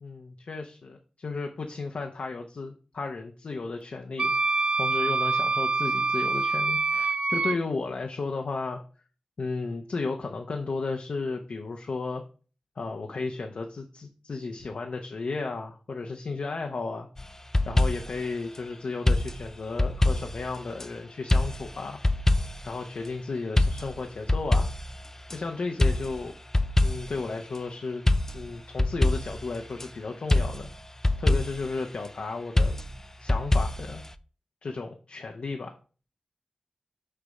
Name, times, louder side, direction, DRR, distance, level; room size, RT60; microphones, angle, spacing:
voice 1, 0.0-4.3 4.8-8.8 9.4-12.2 12.8-17.1 17.6-22.0 22.6-24.7 25.3-26.3 26.8-28.0 28.3-30.7 31.2-32.8 33.2-34.0 34.6-35.8, left 3 dB, 70° left, 3 dB, 0.8 m, -34 dB
Wind instrument woodwind instrument, 4.2-7.6, right 3 dB, 55° right, 0.4 m, -25 dB
sound 1, 17.2-18.3 19.1-20.9 21.3-22.8 23.6-25.4 25.8-27.3 28.1-29.9 30.3-31.7 32.6-34.1, left 2 dB, 20° left, 0.4 m, -25 dB
6.6 x 3.5 x 5.2 m, 0.38 s
wide cardioid pair, 65°, 2 cm